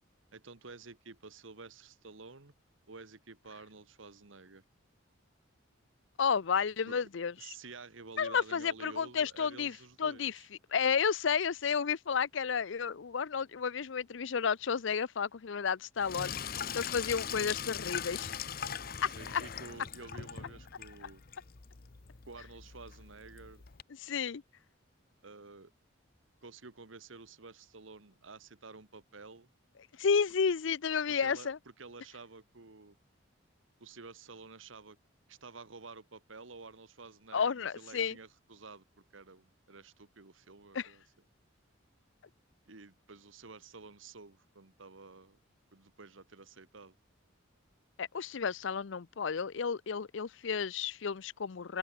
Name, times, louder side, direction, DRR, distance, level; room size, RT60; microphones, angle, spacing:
voice 1, 0.3-2.5 2.9-4.6 6.9-7.0 7.4-10.5 19.2-21.2 22.2-23.6 25.2-25.7 26.4-29.5 31.2-31.5 31.8-33.0 33.8-35.0 35.3-38.8 39.1-41.0 42.7-45.4 45.7-46.9, right 4 dB, 75° right, 1.5 m, -51 dB
voice 2, 6.2-7.5 8.2-10.3 10.7-16.3 16.7-18.3 19.0-19.4 24.0-24.4 30.0-31.6 37.3-38.2 40.7-40.9 48.0-51.8, left 6 dB, 70° left, 0.5 m, -32 dB
Sink (filling or washing), 16.0-23.8, left 8 dB, 45° left, 0.8 m, -41 dB
open air
head